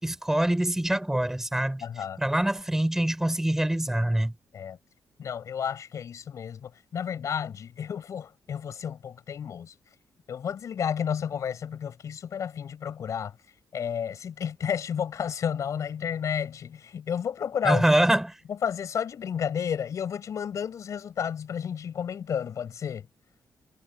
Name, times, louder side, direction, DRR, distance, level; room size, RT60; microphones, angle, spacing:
voice 1, 0.0-1.8 2.2-4.3 17.6-18.3, right 1 dB, 5° right, 5.6 m, -24 dB
voice 2, 1.8-2.2 4.5-4.8 5.2-9.7 10.3-13.3 13.7-17.9 18.5-23.1, left 8 dB, 60° left, 7.4 m, -32 dB
wide cardioid pair, 140°, 6 cm